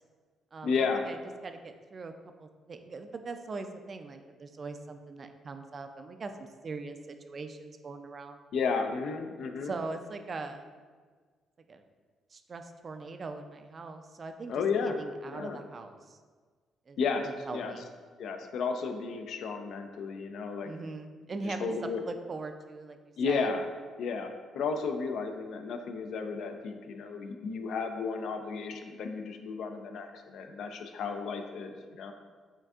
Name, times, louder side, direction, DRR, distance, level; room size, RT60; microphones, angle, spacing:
voice 1, 0.6-1.0 8.5-9.7 14.5-15.0 15.2-15.6 17.0-17.7 18.2-20.7 21.4-22.0 23.2-23.6 24.0-32.1, left 5 dB, 75° left, 6 dB, 0.3 m, -33 dB
voice 2, 1.4-2.1 2.4-8.4 9.6-10.7 11.7-11.8 12.3-16.2 16.9-17.0 17.2-17.9 20.6-21.7 22.0-23.0 23.3-23.5, right 3 dB, 40° right, 7 dB, 0.3 m, -41 dB
5.6 x 2.6 x 2.4 m, 1.5 s
cardioid pair, 90°, 0 cm